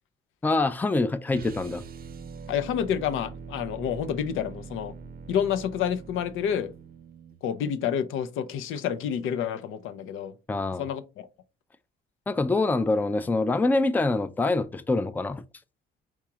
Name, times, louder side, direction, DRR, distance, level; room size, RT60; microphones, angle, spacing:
voice 1, 0.4-1.8 10.5-10.8 12.3-15.4, left 2 dB, 10° left, 0.4 m, -25 dB
sound 1, 1.3-7.4, right 5 dB, 50° right, 0.5 m, -43 dB
voice 2, 2.5-4.9 5.3-6.7 7.4-10.3 10.8-11.3, left 8 dB, 85° left, 0.6 m, -29 dB
4.8 x 3.6 x 2.9 m
cardioid pair, 90°, 20 cm